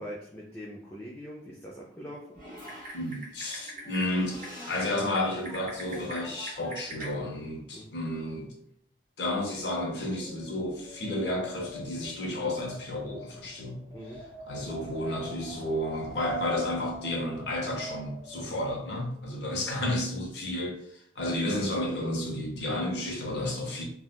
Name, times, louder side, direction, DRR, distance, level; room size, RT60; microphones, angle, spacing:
voice 1, 0.0-2.3 7.7-7.9 13.9-14.2 19.3-19.5, equal, 15° left, -4 dB, 0.3 m, -42 dB
Typing, 2.3-7.1, right 1 dB, 40° right, 1.2 m, -43 dB
voice 2, 2.9-8.5 9.2-13.8 14.5-23.8, left 1 dB, 60° left, 0 dB, 0.7 m, -32 dB
Wind, 9.9-18.7, right 2 dB, 20° right, 1.2 m, -44 dB
3.4 x 2.3 x 2.2 m, 0.73 s
head